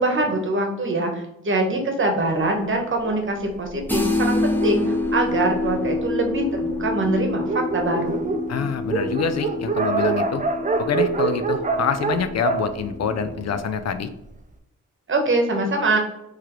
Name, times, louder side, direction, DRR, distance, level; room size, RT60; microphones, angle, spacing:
voice 1, 0.0-4.8 5.1-8.3 15.1-16.0, right 2 dB, 40° right, 3 dB, 1.1 m, -23 dB
Dog, 3.0-6.0 6.7-6.8 7.1-7.2 7.4-13.8, right 4 dB, 25° right, 0.5 m, -27 dB
sound 1, 3.9-13.5, left 2 dB, 5° left, 0.8 m, -27 dB
voice 2, 8.5-10.5 10.8-14.1, left 6 dB, 55° left, 10 dB, 0.4 m, -26 dB
3.6 x 3.2 x 3.0 m, 0.86 s
cardioid pair, 65°, 31 cm